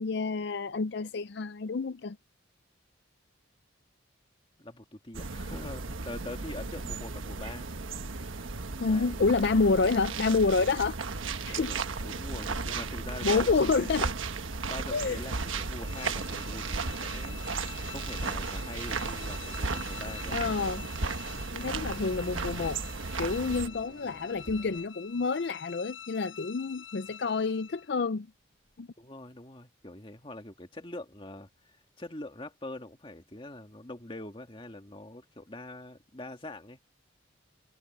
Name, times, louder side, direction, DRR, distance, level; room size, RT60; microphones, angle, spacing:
voice 1, 0.0-2.2 8.8-11.0 11.5-11.7 13.2-14.1 14.9-15.2 20.3-20.9 21.5-22.8 23.2-28.3 28.8-28.9, left 4 dB, 55° left, 0.5 m, -28 dB
voice 2, 4.6-7.7 8.9-9.2 11.4-13.6 14.7-17.4 17.9-20.4 29.0-36.8, left 1 dB, 25° left, 2.1 m, -44 dB
sound 1, 5.1-23.7, right 4 dB, 85° right, 1.3 m, -35 dB
sound 2, 5.5-24.9, right 1 dB, 45° right, 1.6 m, -51 dB
sound 3, 14.7-28.1, left 10 dB, 80° left, 6.0 m, -48 dB
head